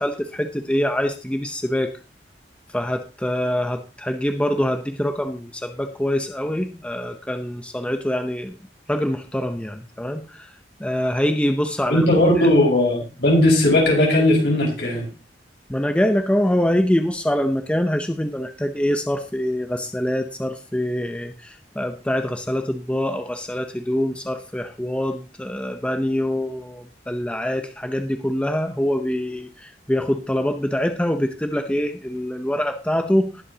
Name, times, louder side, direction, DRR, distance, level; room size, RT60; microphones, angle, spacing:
voice 1, 0.0-1.9 2.7-8.5 8.9-10.2 10.8-12.1 15.7-33.3, equal, 5° left, 6 dB, 0.7 m, -24 dB
voice 2, 11.9-15.1, left 1 dB, 70° left, -2 dB, 5.4 m, -17 dB
19.5 x 7.6 x 2.9 m, 0.32 s
head